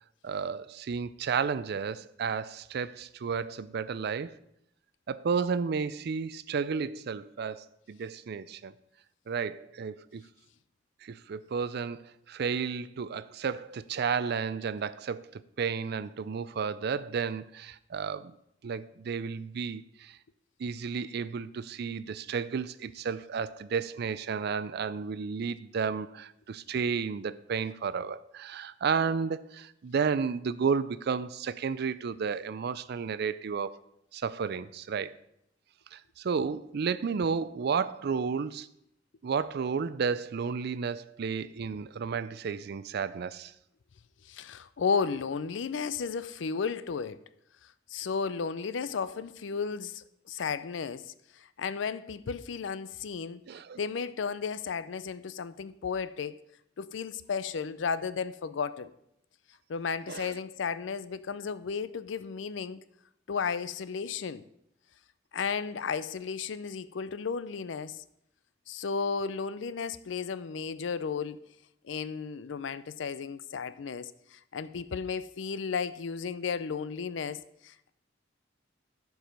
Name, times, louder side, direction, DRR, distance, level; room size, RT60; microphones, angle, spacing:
voice 1, 0.2-4.4 5.1-8.7 9.3-10.2 11.0-12.0 12.3-18.3 18.6-20.2 20.6-33.8 34.1-35.1 35.9-38.7 39.2-43.5 53.5-53.8 60.1-60.3, right 6 dB, 60° right, 0.4 m, -32 dB
voice 2, 44.3-47.2 47.9-53.4 53.8-56.4 56.8-58.9 59.7-62.8 63.3-64.4 65.3-68.0 68.7-71.4 71.8-77.9, left 5 dB, 70° left, 0.5 m, -34 dB
11.5 x 4.7 x 5.2 m
head